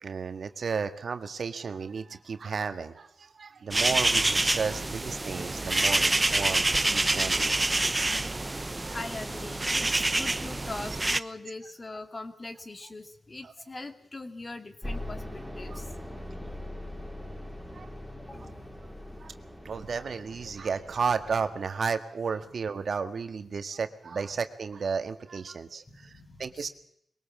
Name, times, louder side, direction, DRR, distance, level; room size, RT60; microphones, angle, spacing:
voice 1, 0.0-7.6 8.4-9.0 13.4-13.5 15.6-15.8 17.7-17.9 19.2-19.3 19.6-26.7, right 5 dB, 65° right, 8 dB, 1.7 m, -33 dB
sound 1, 3.7-11.2, right 2 dB, 25° right, 0.9 m, -27 dB
voice 2, 8.9-15.9 18.3-18.6 25.6-26.7, left 2 dB, 35° left, 8 dB, 2.4 m, -42 dB
sound 2, 14.8-21.6, left 1 dB, 5° left, 5.0 m, -41 dB
22.5 x 18.0 x 7.4 m, 0.72 s
cardioid pair, 60°, 0 cm